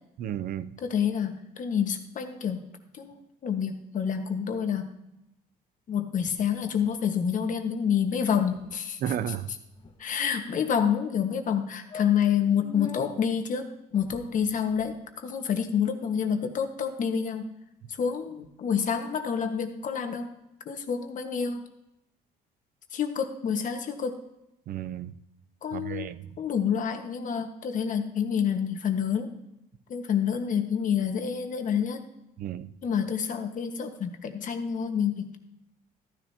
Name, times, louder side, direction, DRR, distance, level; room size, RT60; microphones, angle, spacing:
voice 1, 0.2-0.7 9.0-9.5 24.7-25.2 25.7-26.3 32.4-32.7, right 10 dB, 60° right, 0.6 m, -33 dB
voice 2, 0.8-2.6 2.9-4.9 5.9-9.0 10.0-17.5 18.0-20.3 20.6-21.6 22.9-24.2 25.6-26.1 26.4-29.3 29.9-32.0 32.8-35.4, left 7 dB, 50° left, 1.4 m, -28 dB
sound 1, 6.2-7.0 7.3-7.4 7.7-8.0 8.2-8.3 8.5-8.8 9.4-10.5 11.1-11.2 11.5-11.6 11.9-13.1 13.9-14.9, left 5 dB, 30° left, 0.9 m, -44 dB
14.5 x 10.5 x 2.8 m
cardioid pair, 110°, 17 cm